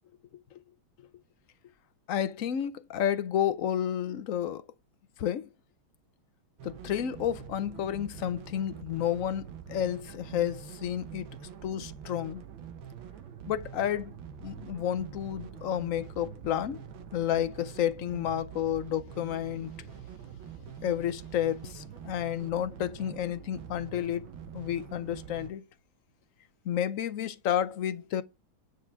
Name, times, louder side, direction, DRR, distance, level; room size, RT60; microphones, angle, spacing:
voice 1, 2.1-4.6 5.2-5.5 6.6-11.3 11.6-12.4 13.5-16.8 17.1-19.7 20.8-24.3 24.5-25.7 26.6-28.2, left 10 dB, 75° left, 0.7 m, -31 dB
sound 1, 6.6-25.5, right 8 dB, 70° right, 1.7 m, -45 dB
9.7 x 4.7 x 7.0 m
omnidirectional pair, 2.3 m